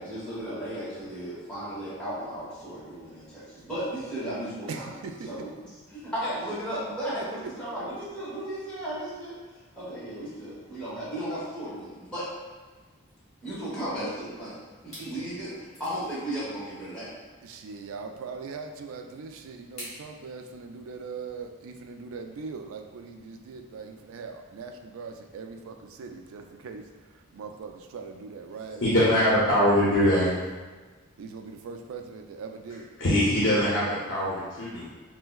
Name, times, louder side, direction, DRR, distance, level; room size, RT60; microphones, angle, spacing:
voice 1, 0.0-4.9 5.3-5.5 5.9-9.4 9.8-12.3 13.4-14.6 14.8-17.1, right 1 dB, 5° left, -12 dB, 0.9 m, -35 dB
voice 2, 4.7-5.5 17.4-28.9 31.2-32.9, right 5 dB, 80° right, 5 dB, 0.3 m, -40 dB
sound 1, 14.9-15.1 15.7-16.2 17.7-17.8 19.8-20.0, equal, 35° left, 1.5 m, -43 dB
voice 3, 28.8-30.3 33.0-34.9, equal, 55° left, -7 dB, 0.6 m, -22 dB
4.3 x 2.1 x 2.2 m, 1.3 s
head